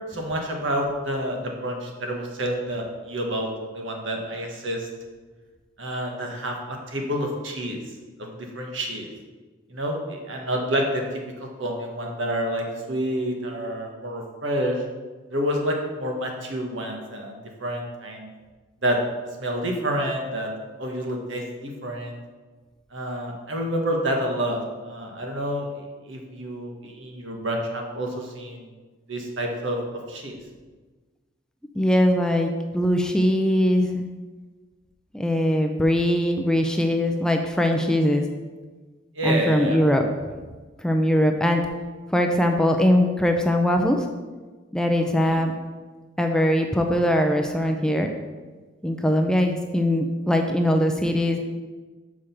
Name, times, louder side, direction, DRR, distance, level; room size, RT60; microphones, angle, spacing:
voice 1, 0.1-4.9 5.8-7.8 8.2-9.1 9.7-14.8 15.3-18.3 18.8-19.0 19.4-20.5 20.8-22.2 22.9-28.7 29.1-29.8 30.1-30.4 39.1-39.8 45.2-45.4, equal, 75° right, 1 dB, 1.4 m, -28 dB
voice 2, 31.8-34.1 35.1-38.2 39.2-40.3 40.8-41.6 42.1-44.0 44.7-45.5 46.2-48.1 48.8-51.4, equal, 5° left, 4 dB, 0.4 m, -21 dB
6.2 x 4.9 x 5.7 m, 1.3 s
head